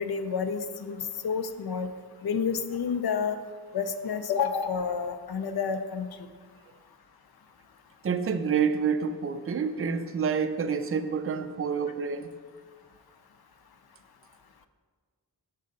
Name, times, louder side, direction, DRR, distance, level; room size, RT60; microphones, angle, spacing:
voice 1, 0.0-1.9 2.2-3.4 3.7-6.1, left 6 dB, 65° left, 0.5 m, -29 dB
voice 2, 8.0-12.3, right 6 dB, 35° right, 0.4 m, -28 dB
6.3 x 3.8 x 5.4 m
wide cardioid pair, 75°, 42 cm